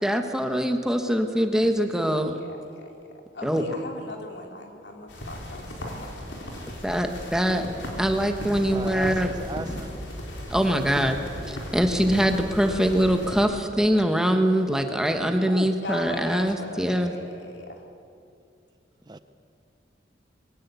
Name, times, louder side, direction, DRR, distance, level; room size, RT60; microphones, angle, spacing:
voice 1, 0.0-2.4 3.4-3.6 6.8-7.7 8.0-9.3 10.5-11.2 11.5-17.1, equal, 5° right, 5 dB, 1.3 m, -23 dB
voice 2, 2.1-6.4 15.8-17.8, left 2 dB, 65° left, 2 dB, 2.9 m, -40 dB
sound 1, 5.1-13.5, equal, 80° left, 4.1 m, -36 dB
voice 3, 8.7-9.9 15.4-15.8 19.1-19.2, right 2 dB, 25° right, 11 dB, 0.6 m, -35 dB
22.0 x 17.0 x 8.3 m, 2.5 s
head